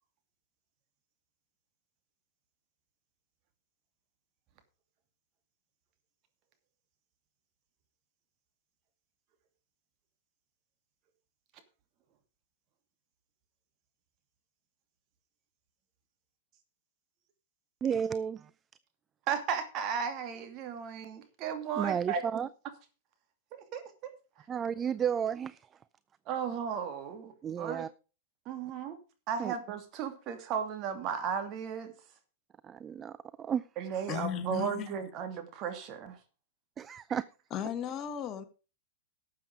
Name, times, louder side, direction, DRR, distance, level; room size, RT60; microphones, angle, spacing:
voice 1, 17.8-18.5 21.8-22.5 24.5-25.7 27.4-27.9 29.4-29.5 32.6-33.7 36.8-37.3, right 8 dB, 25° right, 0.4 m, -32 dB
voice 2, 19.3-22.4 23.5-24.1 26.3-27.8 28.5-29.0 29.3-31.9 33.8-36.2, right 7 dB, 40° right, 2.7 m, -35 dB
voice 3, 34.1-34.9 37.5-38.4, left 9 dB, 35° left, 1.6 m, -35 dB
12.5 x 7.7 x 5.0 m
hypercardioid pair, 120°, 0 cm